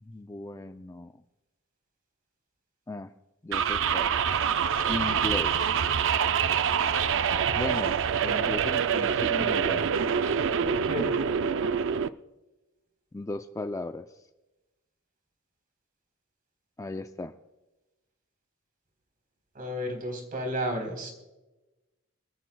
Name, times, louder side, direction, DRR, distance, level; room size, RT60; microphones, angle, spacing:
voice 1, 0.0-1.1 2.9-3.1 3.4-4.1 4.9-5.6 7.6-9.9 13.1-14.1 16.8-17.3, left 2 dB, 15° left, 8 dB, 0.4 m, -36 dB
sound 1, 3.5-12.1, right 7 dB, 65° right, 0.5 m, -26 dB
voice 2, 10.6-11.2 19.5-21.1, equal, 40° right, 4 dB, 3.8 m, -32 dB
26.0 x 13.5 x 2.3 m, 1.1 s
head